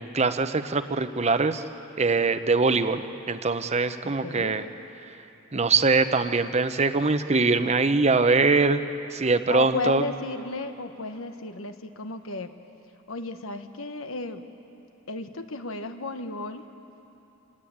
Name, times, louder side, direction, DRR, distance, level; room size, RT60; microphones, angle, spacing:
voice 1, 0.0-1.6 2.0-4.6 5.5-8.8 9.1-10.0, right 3 dB, 35° right, 10 dB, 0.8 m, -23 dB
voice 2, 4.0-4.6 9.5-12.5 13.1-14.5 15.1-16.7, left 2 dB, 85° left, 8 dB, 1.3 m, -33 dB
26.5 x 19.0 x 8.8 m, 3.0 s
head